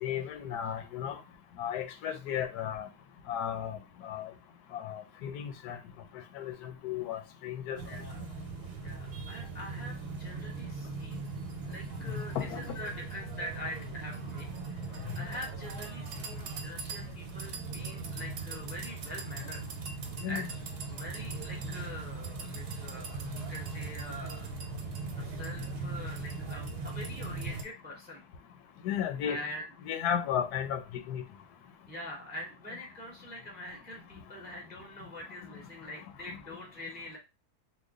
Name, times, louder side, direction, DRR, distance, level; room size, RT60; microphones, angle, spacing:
voice 1, 0.0-1.2 1.6-2.9 3.3-4.3 4.7-5.8 6.3-7.8 12.0-12.7 15.1-15.3 20.2-20.5 28.8-29.4 29.9-30.8 31.1-31.2, left 9 dB, 80° left, 1.1 m, -34 dB
voice 2, 7.8-8.3 8.8-11.3 11.6-14.5 14.9-19.6 20.3-20.5 20.9-24.5 25.1-28.2 29.2-29.7 31.9-37.2, left 1 dB, 10° right, 0.5 m, -44 dB
sound 1, 7.8-27.6, right 3 dB, 90° right, 1.2 m, -39 dB
3.1 x 2.2 x 3.6 m
omnidirectional pair, 1.7 m